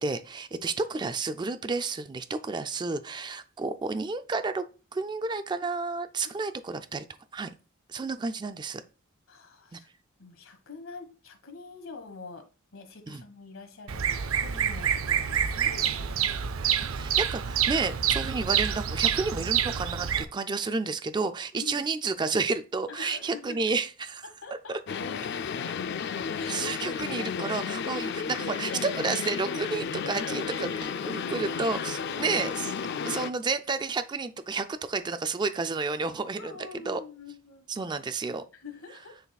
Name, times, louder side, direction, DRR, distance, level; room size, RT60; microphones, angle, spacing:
voice 1, 0.0-4.6 4.9-7.0 7.3-7.5 7.9-8.8 9.7-9.8 13.1-13.2 16.9-24.3 24.7-24.8 26.4-30.7 31.0-32.7 33.1-36.5 36.9-37.0 37.7-38.4, right 4 dB, 20° right, 9 dB, 0.3 m, -31 dB
voice 2, 9.3-9.9 10.2-12.5 12.7-16.8 21.5-21.9 22.9-23.6 24.2-25.0 26.2-27.1 30.3-30.8 32.0-32.3 36.4-37.7 38.5-39.2, left 4 dB, 75° left, 5 dB, 1.4 m, -45 dB
Bird vocalization bird call bird song, 13.9-20.2, right 9 dB, 85° right, 0.5 m, -27 dB
sound 1, 24.9-33.3, left 6 dB, 55° left, 0.4 m, -33 dB
10.0 x 4.1 x 2.3 m, 0.34 s
head